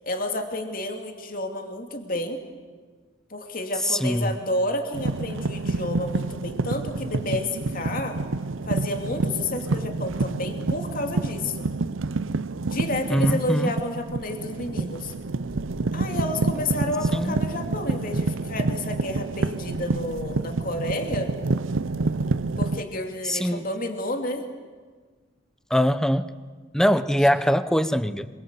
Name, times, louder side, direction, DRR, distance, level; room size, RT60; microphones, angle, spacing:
voice 1, 0.0-2.4 3.3-8.2 8.7-11.7 12.6-15.1 15.9-21.4 22.6-24.4, left 1 dB, 40° left, 4 dB, 2.8 m, -30 dB
voice 2, 3.8-4.3 13.1-13.7 17.1-17.4 23.2-23.7 25.7-26.4 26.7-28.3, equal, 5° left, 12 dB, 0.7 m, -22 dB
sound 1, 4.9-22.8, right 3 dB, 70° right, 0.7 m, -28 dB
27.0 x 23.5 x 8.3 m, 1.5 s
head